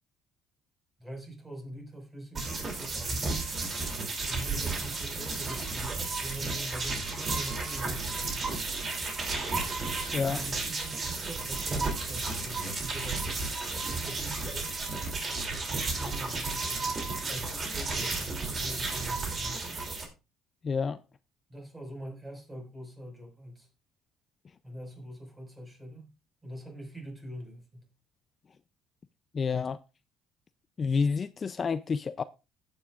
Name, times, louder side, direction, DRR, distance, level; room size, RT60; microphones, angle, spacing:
voice 1, 1.0-3.4 4.2-8.4 10.2-14.7 15.7-16.9 17.3-19.8 21.5-23.7 24.6-26.1 26.4-27.9, equal, 15° right, 5.2 m, -43 dB
sound 1, 2.3-20.0, right 3 dB, 35° right, 2.9 m, -33 dB
voice 2, 20.6-21.0 29.3-29.8 30.8-32.2, left 5 dB, 30° left, 0.4 m, -29 dB
15.5 x 9.0 x 2.4 m
cardioid pair, 120°, 0 cm